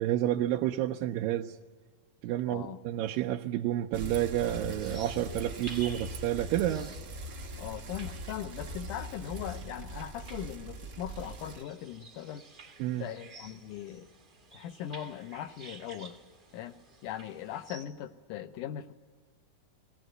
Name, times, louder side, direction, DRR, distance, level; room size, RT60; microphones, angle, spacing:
voice 1, 0.0-1.5 2.2-6.9 12.8-13.0, right 13 dB, 90° right, 2 dB, 2.5 m, -30 dB
voice 2, 2.5-2.8 7.5-12.5 12.9-14.1 14.5-16.2 16.5-16.8 17.0-18.9, left 11 dB, 75° left, 10 dB, 2.2 m, -40 dB
Bicycle, 3.9-11.6, right 1 dB, 75° right, 0.9 m, -41 dB
sound 1, 4.3-17.8, right 3 dB, 55° right, 0.5 m, -52 dB
20.0 x 18.5 x 7.8 m, 1.5 s
omnidirectional pair, 3.9 m